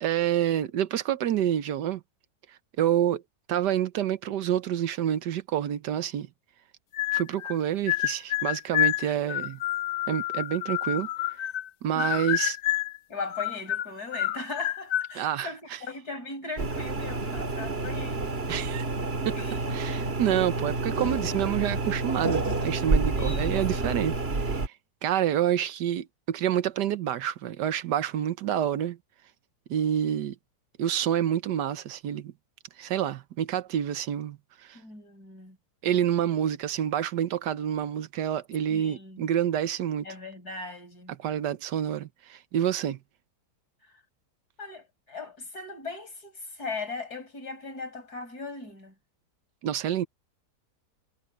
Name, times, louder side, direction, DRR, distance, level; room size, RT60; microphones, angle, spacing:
voice 1, 0.0-2.0 2.8-3.2 3.5-6.3 7.1-9.6 10.1-11.1 11.8-12.6 15.1-15.8 18.5-18.9 19.2-19.4 19.7-24.7 25.0-29.0 29.7-30.3 30.8-32.3 32.8-34.8 35.8-40.1 41.1-43.0 49.6-50.1, right 10 dB, 90° right, 1.5 m, -28 dB
sound 1, 6.9-7.6 7.9-11.7 12.0-13.0 13.3-15.1, left 15 dB, 90° left, 0.6 m, -28 dB
voice 2, 13.1-18.3 19.4-20.0 23.2-24.2 34.7-35.6 38.7-39.3 40.0-41.1 44.6-48.9, left 3 dB, 65° left, 6.0 m, -39 dB
sound 2, 16.6-24.7, right 3 dB, 35° right, 2.4 m, -29 dB
omnidirectional pair, 1.8 m